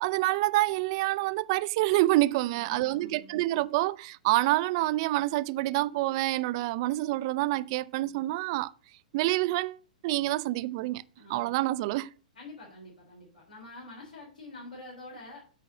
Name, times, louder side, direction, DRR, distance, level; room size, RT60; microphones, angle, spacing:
voice 1, 0.0-8.7 9.1-11.0 11.3-12.1, right 18 dB, 40° right, 0.3 m, -27 dB
voice 2, 2.4-3.3 11.2-11.5 12.4-15.4, left 2 dB, 75° left, 3.5 m, -47 dB
8.3 x 4.7 x 5.1 m
figure-of-eight pair, 105°, 4 cm